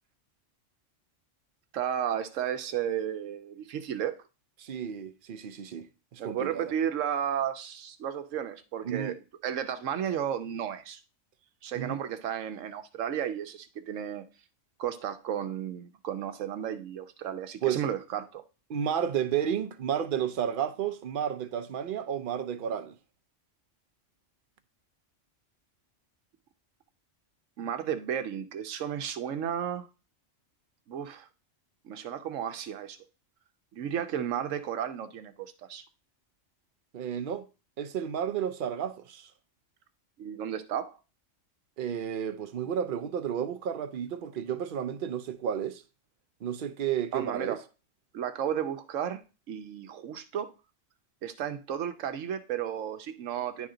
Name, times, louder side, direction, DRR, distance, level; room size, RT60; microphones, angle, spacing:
voice 1, 1.7-4.2 6.2-9.1 9.4-11.0 11.6-14.2 14.8-18.4 27.6-29.9 30.9-31.3 31.8-33.0 33.7-35.8 40.2-41.0 47.1-47.6 48.1-49.2 49.5-50.5 51.2-53.7, right 9 dB, 85° right, 1.1 m, -33 dB
voice 2, 4.6-5.9 6.1-6.7 8.8-9.2 11.8-12.0 17.6-17.8 18.7-23.0 36.9-37.5 37.8-39.3 41.8-45.8 46.4-47.6, right 9 dB, 55° right, 0.6 m, -32 dB
10.0 x 3.5 x 3.8 m
omnidirectional pair, 1.3 m